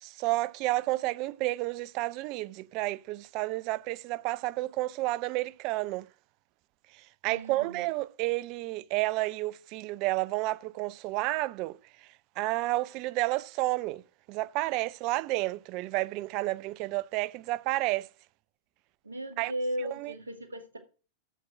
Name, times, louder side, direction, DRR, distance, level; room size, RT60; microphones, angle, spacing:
voice 1, 0.0-6.1 7.2-11.8 12.4-14.0 14.3-18.1 19.4-19.5 20.0-20.1, right 19 dB, 40° right, 0.4 m, -31 dB
voice 2, 7.2-7.8 19.0-20.8, right 1 dB, 75° right, 1.9 m, -36 dB
7.5 x 6.6 x 7.7 m
figure-of-eight pair, 90°, 0 cm